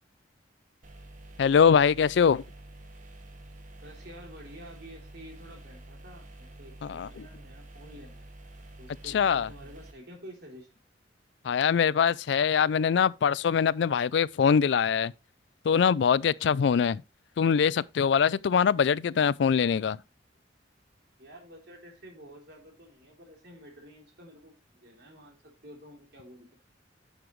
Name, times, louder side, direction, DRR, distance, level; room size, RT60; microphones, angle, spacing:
sound 1, 0.8-9.9, right 1 dB, 40° right, 1.3 m, -48 dB
voice 1, 1.4-2.4 6.8-7.1 9.1-9.5 11.4-15.1 15.6-17.0 17.4-20.0, left 7 dB, 65° left, 0.3 m, -23 dB
voice 2, 3.8-8.3 8.8-10.8 21.2-26.5, equal, 60° right, 3.4 m, -50 dB
9.8 x 7.0 x 3.1 m
head